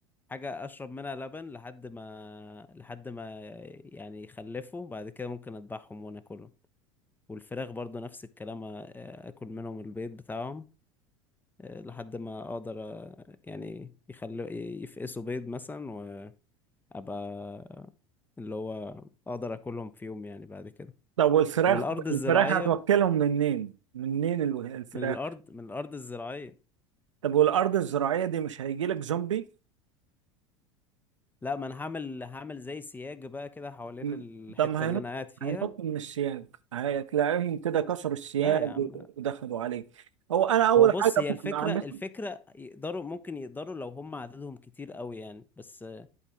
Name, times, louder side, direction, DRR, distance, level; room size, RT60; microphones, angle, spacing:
voice 1, 0.3-6.5 7.3-10.7 11.6-16.3 16.9-17.9 18.4-20.9 21.7-22.8 24.9-26.5 31.4-35.7 38.4-39.0 40.8-46.1, left 3 dB, 10° left, 0.5 m, -38 dB
voice 2, 21.2-21.8 22.1-25.2 27.2-29.5 34.0-34.2 34.6-35.0 35.4-36.5 36.7-39.8 40.3-41.1 41.4-41.8, right 10 dB, 80° right, 0.5 m, -26 dB
11.0 x 4.1 x 3.5 m
figure-of-eight pair, 75°, 16 cm